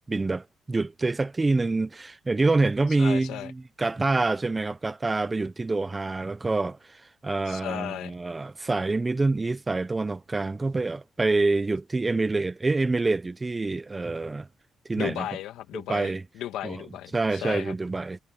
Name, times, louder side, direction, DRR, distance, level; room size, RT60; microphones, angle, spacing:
voice 1, 0.1-14.5 14.9-15.3 15.7-16.2 16.6-16.8 17.1-18.2, right 3 dB, 20° right, 0.6 m, -26 dB
voice 2, 3.0-3.5 7.5-8.1 15.0-17.8, left 12 dB, 90° left, 2.3 m, -35 dB
cardioid pair, 90°, 0 cm